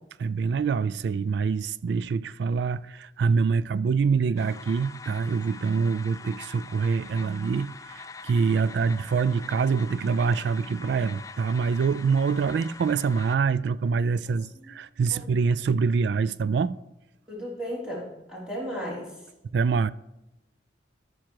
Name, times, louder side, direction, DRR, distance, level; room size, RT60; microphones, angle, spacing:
voice 1, 0.2-16.8 19.5-19.9, right 5 dB, 70° right, 0.3 m, -25 dB
sound 1, 4.4-13.4, left 4 dB, 20° left, 0.4 m, -44 dB
voice 2, 17.3-19.1, equal, 5° right, 3.4 m, -35 dB
13.5 x 6.2 x 4.6 m
head